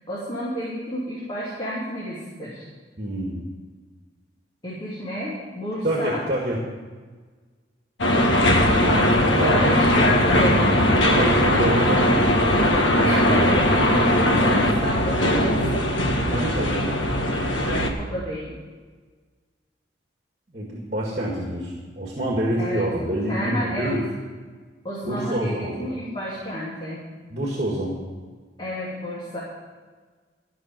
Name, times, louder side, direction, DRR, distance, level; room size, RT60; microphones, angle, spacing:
voice 1, 0.1-2.7 4.6-6.2 8.2-8.8 9.1-10.6 13.0-15.9 18.0-18.6 22.6-23.9 24.8-27.0 28.6-29.4, equal, 25° left, -8 dB, 2.7 m, -30 dB
voice 2, 3.0-3.4 5.8-6.6 9.3-9.9 11.1-12.3 16.3-16.9 20.5-24.0 25.0-25.8 27.3-28.0, right 1 dB, 40° right, -2 dB, 1.8 m, -26 dB
sound 1, 8.0-17.9, left 1 dB, 90° left, 1.4 m, -19 dB
13.0 x 6.3 x 9.0 m, 1.5 s
head